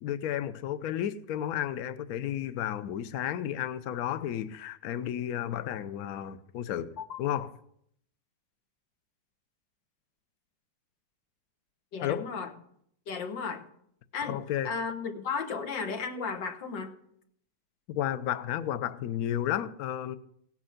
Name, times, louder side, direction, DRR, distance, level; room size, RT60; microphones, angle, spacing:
voice 1, 0.0-7.5 12.0-12.3 14.3-14.7 17.9-20.2, left 11 dB, 65° left, 1.1 m, -32 dB
voice 2, 11.9-12.5 13.1-13.7 14.1-16.9, left 5 dB, 90° left, 2.0 m, -34 dB
17.0 x 8.9 x 5.8 m
omnidirectional pair, 1.9 m